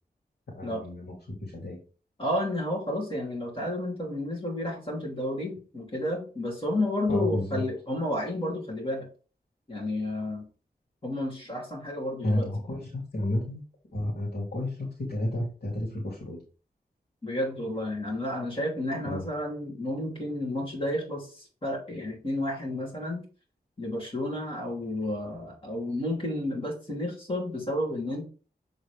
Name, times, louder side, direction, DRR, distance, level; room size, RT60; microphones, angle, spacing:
voice 1, 0.5-1.1 1.5-1.8 7.1-7.6 12.2-13.6 13.9-16.4 19.0-19.2, left 1 dB, 85° left, -4 dB, 2.5 m, -31 dB
voice 2, 2.2-9.1 9.7-10.4 11.0-12.5 17.2-23.2 23.8-28.3, left 1 dB, 35° left, -2 dB, 2.9 m, -31 dB
7.1 x 4.0 x 3.4 m, 0.37 s
wide cardioid pair, 95°, 16 cm